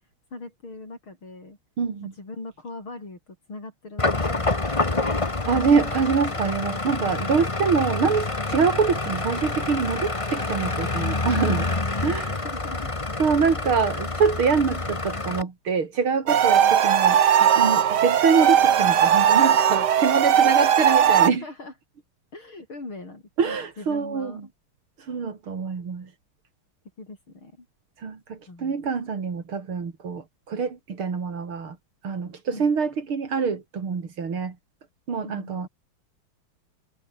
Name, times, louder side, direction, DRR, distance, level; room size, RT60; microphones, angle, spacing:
voice 1, 0.3-1.6 2.1-5.0 7.2-7.6 11.7-12.8 16.6-16.8 20.3-20.5 21.0-21.7 22.3-24.5 27.0-27.7 28.5-28.8 32.5-32.7 35.2-35.6, left 2 dB, 80° left, 7.8 m, -41 dB
voice 2, 1.8-2.1 5.5-11.7 12.0-12.4 13.2-21.4 23.4-24.3 25.0-26.1 28.0-31.8 32.0-34.6 35.1-35.7, right 5 dB, 90° right, 3.8 m, -25 dB
sound 1, 4.0-15.4, left 2 dB, 15° left, 1.5 m, -27 dB
sound 2, 16.3-21.3, right 9 dB, 60° right, 1.7 m, -18 dB
omnidirectional pair, 2.3 m